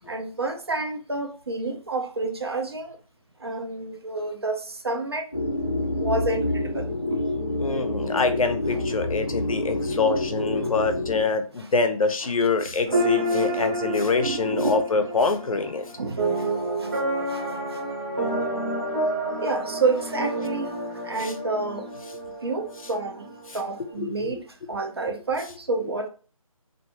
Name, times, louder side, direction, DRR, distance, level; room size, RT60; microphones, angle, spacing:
voice 1, 0.1-3.0 3.4-5.3 6.0-7.2 8.7-8.8 10.6-10.7 11.6-11.7 12.9-13.0 13.4-13.7 14.2-14.9 16.0-16.5 16.8-16.9 17.3-17.4 17.7-17.8 19.4-20.7 21.0-21.9 22.4-26.1, right 3 dB, 45° right, 4 dB, 0.4 m, -29 dB
sound 1, 5.3-11.2, left 1 dB, 20° left, 0.4 m, -28 dB
voice 2, 7.6-15.9 21.2-21.3 24.0-24.1, left 4 dB, 70° left, 8 dB, 0.5 m, -25 dB
sound 2, 12.9-23.9, right 1 dB, 25° right, 0.8 m, -29 dB
2.5 x 2.2 x 2.7 m, 0.38 s
figure-of-eight pair, 175°, 18 cm